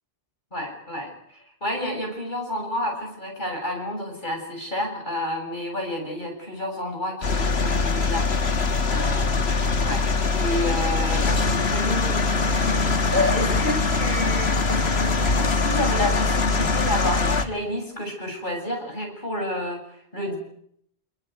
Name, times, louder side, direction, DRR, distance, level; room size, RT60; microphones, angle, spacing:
voice 1, 0.5-10.0 10.4-20.4, left 1 dB, 45° left, 2 dB, 7.7 m, -30 dB
sound 1, 7.2-17.5, left 3 dB, 70° left, 1.9 m, -22 dB
25.5 x 21.0 x 9.5 m, 0.69 s
omnidirectional pair, 1.1 m